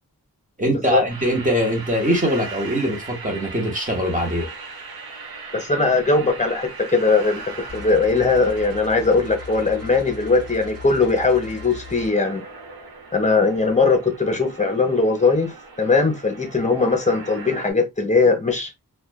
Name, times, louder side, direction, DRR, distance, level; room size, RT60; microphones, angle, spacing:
voice 1, 0.6-4.5, equal, 20° right, 1.1 m, -22 dB
sound 1, 1.1-17.7, right 4 dB, 75° right, 0.8 m, -39 dB
voice 2, 5.5-12.4 13.1-18.7, left 4 dB, 20° left, 0.8 m, -20 dB
sound 2, 7.7-12.1, left 5 dB, 40° right, 1.3 m, -39 dB
2.4 x 2.3 x 2.2 m
wide cardioid pair, 40°, 36 cm